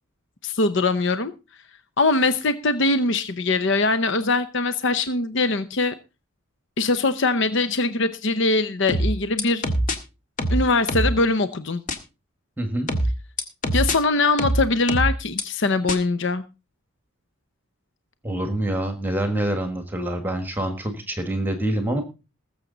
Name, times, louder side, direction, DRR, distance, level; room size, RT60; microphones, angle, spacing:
voice 1, 0.4-1.3 2.0-5.9 6.8-9.7 10.5-11.8 13.7-16.4, left 3 dB, 55° left, 0.8 m, -22 dB
sound 1, 8.9-10.0 10.4-11.2 11.9-12.0 12.9-14.0 14.4-15.4 15.9-16.0, equal, 40° left, 1.8 m, -23 dB
voice 2, 12.6-12.9 18.2-22.0, right 1 dB, 10° right, 1.6 m, -26 dB
20.5 x 7.3 x 3.9 m
head